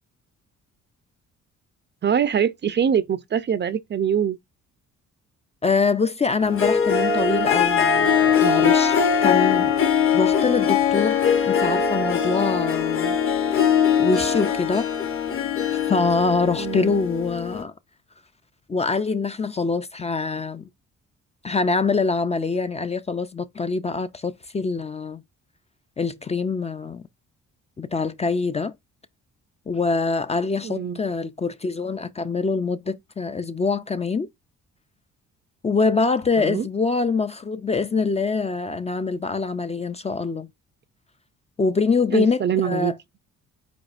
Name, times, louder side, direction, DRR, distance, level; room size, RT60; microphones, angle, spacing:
voice 1, 2.0-4.4 16.6-17.0 30.6-31.0 36.4-36.7 42.1-42.9, right 8 dB, 35° right, 0.5 m, -23 dB
voice 2, 5.6-9.7 10.1-13.2 14.0-14.9 15.7-17.7 18.7-20.6 21.4-25.2 26.0-27.0 27.8-28.7 29.7-34.3 35.6-40.5 41.6-42.9, left 4 dB, 20° left, 0.4 m, -24 dB
Harp, 6.4-17.6, left 7 dB, 45° left, 1.0 m, -21 dB
5.0 x 4.2 x 2.5 m
cardioid pair, 90°, 30 cm